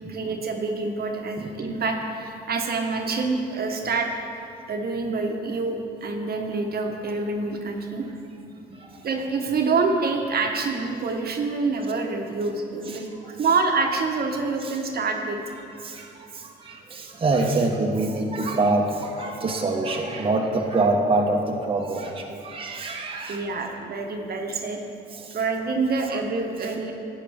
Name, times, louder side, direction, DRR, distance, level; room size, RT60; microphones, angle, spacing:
voice 1, 0.1-4.1 4.7-8.0 9.0-15.4 23.3-24.8 25.3-26.9, right 4 dB, 50° right, 3 dB, 1.0 m, -26 dB
voice 2, 8.6-9.0 12.9-13.3 14.6-14.8 15.8-23.4 25.1-25.4 26.1-26.2, right 2 dB, 25° right, 0 dB, 0.9 m, -26 dB
11.5 x 8.4 x 3.5 m, 2.7 s
cardioid pair, 90°, 20 cm